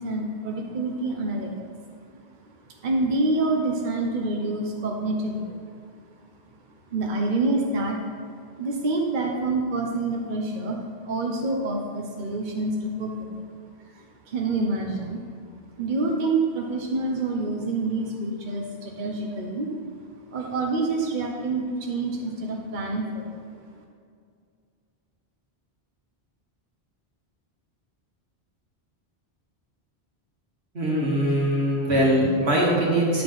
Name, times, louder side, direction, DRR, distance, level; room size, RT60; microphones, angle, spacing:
voice 1, 0.0-1.7 2.7-5.6 6.9-8.0 8.6-13.5 13.9-15.2 15.8-19.7 20.3-23.4, right 2 dB, 50° right, 0 dB, 0.9 m, -27 dB
voice 2, 30.7-33.2, right 1 dB, 75° right, -4 dB, 2.1 m, -22 dB
10.0 x 6.8 x 3.9 m, 2.3 s
omnidirectional pair, 1.1 m